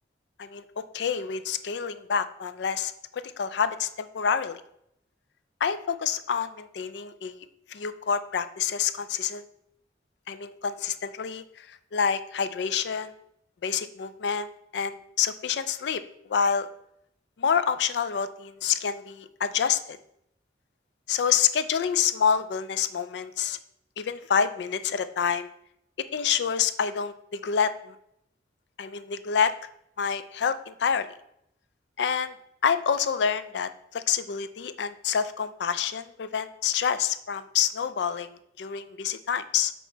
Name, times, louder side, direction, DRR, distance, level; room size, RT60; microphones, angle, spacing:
voice 1, 0.4-4.6 5.6-7.4 7.7-9.4 10.3-13.1 13.6-16.0 16.3-16.7 17.4-20.0 21.1-23.6 24.0-25.5 26.1-28.0 28.8-29.5 30.0-31.1 32.0-32.3 32.6-39.7, left 7 dB, 65° left, 13 dB, 0.4 m, -27 dB
8.3 x 3.0 x 4.5 m, 0.76 s
head